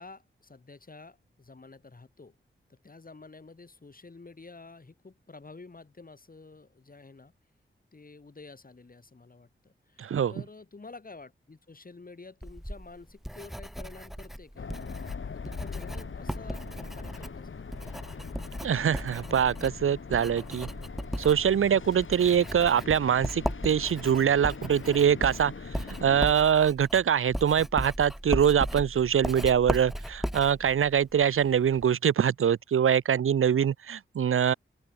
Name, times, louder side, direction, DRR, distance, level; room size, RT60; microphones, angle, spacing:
voice 1, 0.0-2.4 2.7-7.3 7.9-14.9 15.2-18.0, left 3 dB, 45° left, 7.1 m, -50 dB
voice 2, 10.0-10.3 18.6-20.7 21.2-25.5 26.0-34.5, right 8 dB, 85° right, 0.7 m, -24 dB
Writing, 12.4-31.9, equal, ahead, 0.7 m, -37 dB
sound 1, 14.6-26.3, left 5 dB, 70° left, 4.0 m, -42 dB
open air
wide cardioid pair, 80°, 21 cm